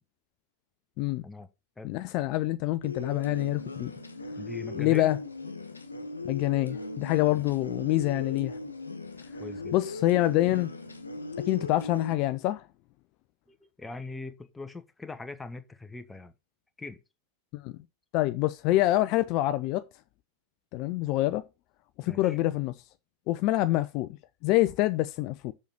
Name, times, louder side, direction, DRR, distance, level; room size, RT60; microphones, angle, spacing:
voice 1, 1.8-3.9 4.7-5.2 6.2-8.6 9.7-10.7 11.4-12.7 17.5-17.8 18.1-19.8 20.7-21.4 22.0-22.8 23.3-24.2 24.4-25.5, left 16 dB, 40° left, 0.6 m, -26 dB
sound 1, 2.8-12.1, left 2 dB, 80° left, 1.2 m, -38 dB
voice 2, 4.4-5.1 9.4-9.8 13.5-16.3 16.8-17.0 22.0-22.4, left 3 dB, 10° left, 1.2 m, -41 dB
7.1 x 5.8 x 6.3 m
figure-of-eight pair, 90°, 0 cm